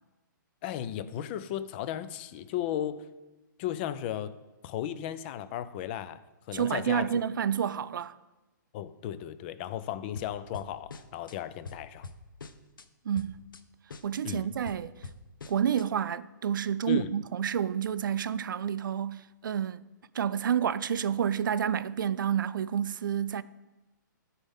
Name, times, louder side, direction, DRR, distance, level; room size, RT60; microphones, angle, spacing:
voice 1, 0.6-3.1 3.6-4.3 4.6-6.2 6.5-7.1 8.7-12.1 14.2-14.5 16.9-17.1, left 11 dB, 30° left, 0.4 m, -35 dB
voice 2, 6.5-8.1 13.0-13.4 14.0-14.9 15.5-19.8 20.1-23.4, right 8 dB, 75° right, 0.4 m, -29 dB
sound 1, 10.1-11.4 11.6-12.9 13.1-13.6 13.9-15.9, left 3 dB, 90° left, 0.6 m, -45 dB
12.5 x 4.3 x 3.6 m
hypercardioid pair, 145°, 11 cm